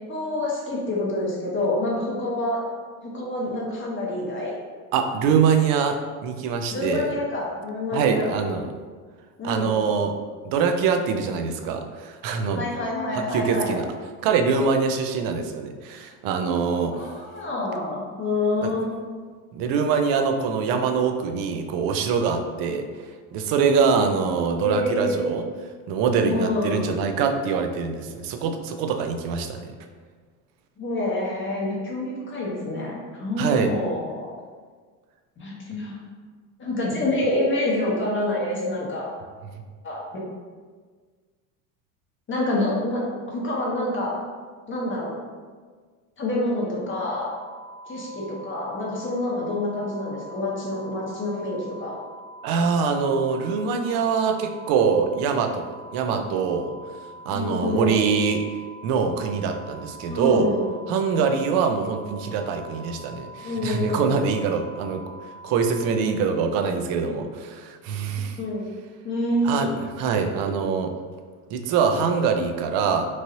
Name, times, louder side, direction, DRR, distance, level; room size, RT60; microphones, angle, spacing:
voice 1, 0.0-2.6 3.0-4.6 6.7-8.3 9.4-9.7 12.5-13.8 16.9-19.1 24.6-25.3 26.2-27.0 30.8-34.3 35.4-36.0 36.6-39.1 39.8-40.2 42.3-43.0 43.3-44.1 44.7-45.1 46.2-47.3 47.9-51.9 57.3-58.0 60.1-60.7 63.4-64.0 68.4-68.6 69.0-69.7, left 1 dB, 25° left, -4 dB, 0.8 m, -27 dB
voice 2, 4.9-7.1 7.9-8.7 9.4-10.2 10.4-12.7 13.1-13.9 14.2-17.0 18.6-18.7 19.5-22.9 23.3-25.4 25.9-29.7 33.4-33.7 52.4-56.7 57.3-58.4 58.8-60.5 60.9-65.0 65.4-68.4 69.4-70.9 71.5-73.1, right 5 dB, 50° right, 6 dB, 0.5 m, -24 dB
sound 1, 46.9-65.9, right 1 dB, 65° left, 0.8 m, -44 dB
3.1 x 2.6 x 2.7 m, 1.5 s
hypercardioid pair, 95°, 46 cm